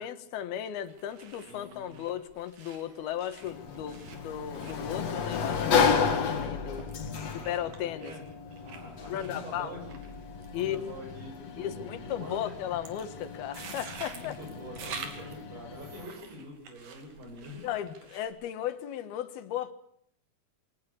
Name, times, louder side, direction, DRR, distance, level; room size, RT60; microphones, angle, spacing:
voice 1, 0.0-6.9 7.4-8.1 9.1-9.7 10.5-10.8 11.6-14.4 17.6-19.7, left 10 dB, 80° left, 3.3 m, -35 dB
sound 1, 0.8-18.3, right 5 dB, 65° right, 4.3 m, -48 dB
voice 2, 1.5-2.0 7.1-8.2 8.6-10.0 10.5-12.6 14.1-17.9, equal, 90° right, 8.5 m, -45 dB
Sliding door, 3.4-16.0, left 6 dB, 45° left, 2.9 m, -33 dB
23.5 x 18.0 x 8.5 m
omnidirectional pair, 4.4 m